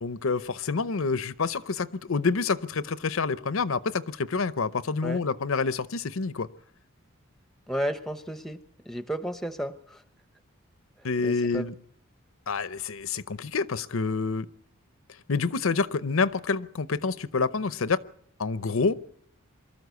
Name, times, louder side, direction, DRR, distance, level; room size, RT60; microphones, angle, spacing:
voice 1, 0.0-6.5 11.0-11.7 12.5-14.5 15.3-18.0 18.4-19.0, left 4 dB, 70° left, 15 dB, 0.7 m, -27 dB
voice 2, 7.7-10.0 11.0-11.7, right 1 dB, ahead, 11 dB, 0.9 m, -33 dB
23.5 x 13.5 x 8.2 m, 0.65 s
head